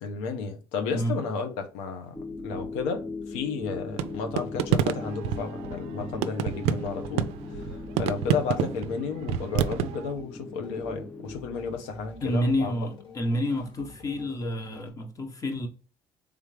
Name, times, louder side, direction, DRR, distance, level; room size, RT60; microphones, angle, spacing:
voice 1, 0.0-2.2 2.4-7.3 7.7-12.7, left 5 dB, 90° left, 0.8 m, -32 dB
sound 1, 2.1-11.4, left 3 dB, 10° left, 0.6 m, -39 dB
sound 2, 4.0-10.1, right 10 dB, 80° right, 0.4 m, -28 dB
sound 3, 7.5-8.5 9.5-14.9, left 3 dB, 50° left, 1.9 m, -49 dB
voice 2, 12.2-15.7, left 1 dB, 35° left, 1.1 m, -29 dB
3.6 x 3.4 x 3.2 m
supercardioid pair, 80°, 10 cm